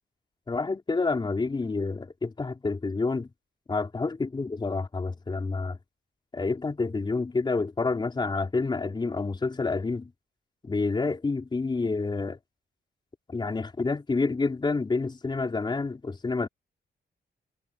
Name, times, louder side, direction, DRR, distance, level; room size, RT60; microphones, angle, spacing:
voice 1, 0.5-3.3 3.7-5.8 6.3-10.1 10.6-12.4 13.3-16.5, left 3 dB, 25° left, 4.1 m, -28 dB
wide cardioid pair, 155°, 19 cm